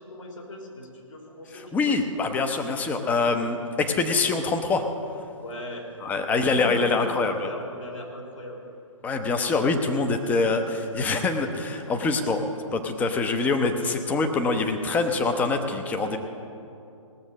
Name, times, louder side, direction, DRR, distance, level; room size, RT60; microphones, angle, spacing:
voice 1, 0.0-2.0 5.4-5.9 6.2-8.6, left 1 dB, 70° left, -1 dB, 3.5 m, -39 dB
voice 2, 1.5-4.9 6.0-7.5 9.0-12.4 12.7-16.2, left 3 dB, 10° left, 6 dB, 0.6 m, -25 dB
18.5 x 7.1 x 6.4 m, 2.7 s
figure-of-eight pair, 135°, 17 cm